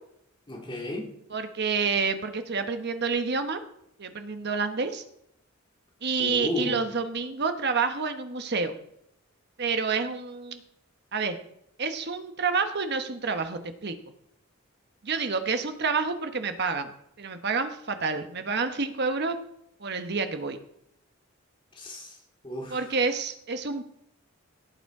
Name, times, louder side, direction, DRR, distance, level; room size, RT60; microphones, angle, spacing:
voice 1, 0.5-1.1 6.2-6.8 21.7-22.2 22.4-22.8, left 1 dB, 25° left, 0 dB, 2.2 m, -33 dB
voice 2, 1.3-3.6 4.0-5.0 6.0-8.7 9.6-10.6 11.1-11.4 11.8-13.9 15.0-16.9 17.2-19.4 19.8-20.6 22.7-23.8, right 4 dB, 50° right, 8 dB, 1.2 m, -28 dB
17.0 x 7.1 x 4.8 m, 0.77 s
head